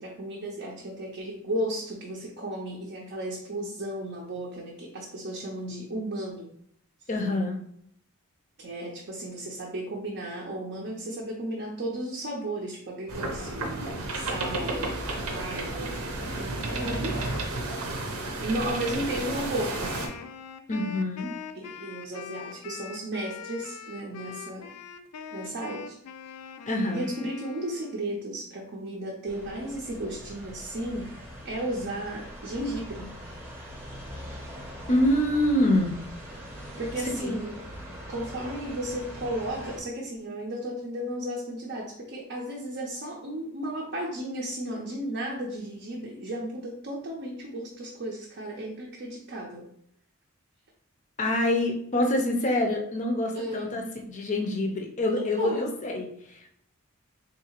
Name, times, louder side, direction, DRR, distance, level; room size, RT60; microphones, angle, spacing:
voice 1, 0.0-6.5 8.6-13.8 14.1-17.2 18.4-20.0 21.5-24.7 25.3-26.0 26.9-31.1 31.4-33.1 36.8-37.6 38.1-49.7 53.3-53.7 55.1-55.7, right 1 dB, 50° right, -3 dB, 0.5 m, -34 dB
voice 2, 7.1-7.6 20.7-21.3 26.7-27.1 34.9-35.9 37.2-37.4 51.2-56.5, left 1 dB, 35° left, 3 dB, 0.5 m, -26 dB
sound 1, 13.1-20.1, right 2 dB, 85° right, 0.8 m, -32 dB
Wind instrument woodwind instrument, 19.7-28.1, left 6 dB, 90° left, 0.3 m, -42 dB
sound 2, 29.3-39.8, equal, 10° right, 0.8 m, -42 dB
3.8 x 2.7 x 2.8 m, 0.67 s
head